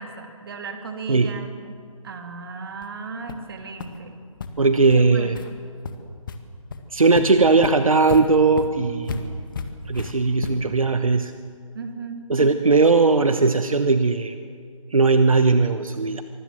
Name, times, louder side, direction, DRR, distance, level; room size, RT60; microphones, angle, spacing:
voice 1, 0.0-1.8 2.0-4.2 4.9-5.5 11.7-12.3, right 4 dB, 40° right, 5 dB, 2.7 m, -36 dB
sound 1, 2.8-2.9 3.3-3.5 3.8-3.9 4.4-4.5 4.9-5.0 5.3-5.5 5.8-6.4 6.7-6.8 7.1-10.8, left 5 dB, 40° left, 1.8 m, -33 dB
voice 2, 4.6-5.4 6.9-9.3 9.9-11.3 12.3-14.4 14.9-16.2, right 3 dB, 75° right, 9 dB, 1.2 m, -18 dB
25.5 x 19.5 x 7.5 m, 2.3 s
figure-of-eight pair, 150°, 18 cm